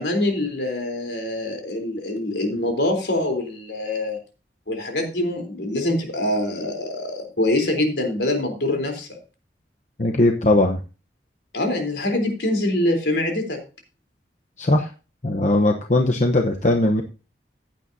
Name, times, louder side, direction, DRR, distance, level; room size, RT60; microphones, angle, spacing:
voice 1, 0.0-4.2 4.7-9.2 11.5-13.6, left 1 dB, 75° left, 3 dB, 3.7 m, -24 dB
voice 2, 10.0-10.8 14.6-14.9 15.2-17.0, left 2 dB, 40° left, 3 dB, 0.9 m, -19 dB
15.5 x 9.1 x 2.8 m, 0.33 s
head